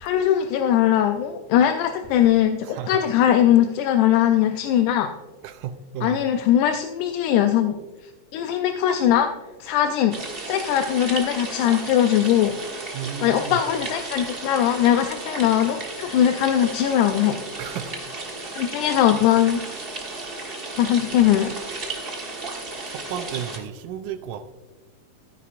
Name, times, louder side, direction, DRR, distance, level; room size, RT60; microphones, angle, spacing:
voice 1, 0.0-5.1 6.0-7.8 8.3-9.3 9.6-10.2 10.4-12.6 13.2-17.4 18.6-19.7 20.8-21.5, left 10 dB, 85° left, 2.0 m, -20 dB
voice 2, 2.6-3.0 5.4-6.2 12.9-13.6 17.6-17.9 20.8-20.9 22.9-24.5, right 9 dB, 90° right, 2.1 m, -33 dB
sound 1, 10.1-23.6, right 3 dB, 55° right, 0.6 m, -34 dB
13.0 x 9.6 x 2.5 m
omnidirectional pair, 3.5 m